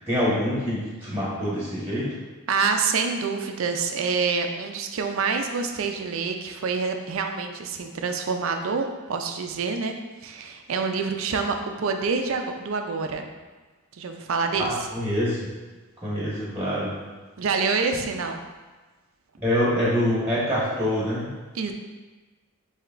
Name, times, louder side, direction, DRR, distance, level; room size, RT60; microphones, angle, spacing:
voice 1, 0.0-2.1 14.6-15.5 16.0-17.0 19.4-21.3, equal, 10° right, -8 dB, 1.2 m, -25 dB
voice 2, 2.5-9.9 10.2-13.3 13.9-14.7 17.4-18.4 21.5-21.7, right 5 dB, 65° right, 5 dB, 0.4 m, -27 dB
7.6 x 2.8 x 2.5 m, 1.3 s
head